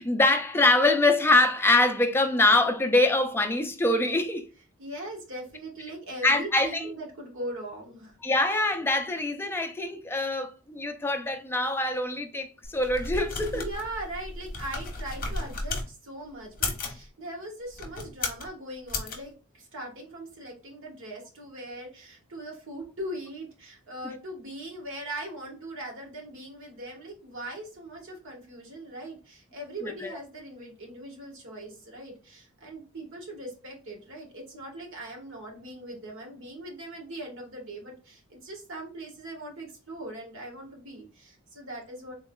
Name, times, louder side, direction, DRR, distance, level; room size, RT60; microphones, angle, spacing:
voice 1, 0.0-4.5 6.2-6.9 8.2-13.7 29.8-30.1, left 2 dB, 10° left, 0.4 m, -24 dB
voice 2, 4.8-8.2 13.5-42.1, right 1 dB, 60° right, 1.4 m, -40 dB
sound 1, 12.6-15.9 16.5-17.0 17.7-18.5 18.9-19.2, left 3 dB, 40° left, 0.9 m, -34 dB
3.7 x 3.1 x 2.2 m
head